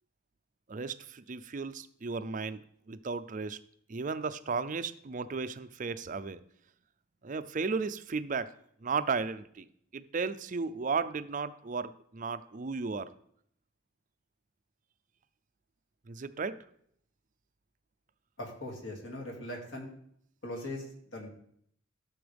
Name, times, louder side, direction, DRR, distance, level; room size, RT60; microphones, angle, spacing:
voice 1, 0.7-3.6 3.9-6.4 7.2-8.5 8.8-9.7 9.9-13.1 16.1-16.6, right 4 dB, 40° right, 12 dB, 0.4 m, -34 dB
voice 2, 18.4-19.9 20.4-20.9 21.1-21.3, left 1 dB, 60° left, -1 dB, 2.3 m, -40 dB
13.0 x 7.0 x 3.5 m, 0.67 s
head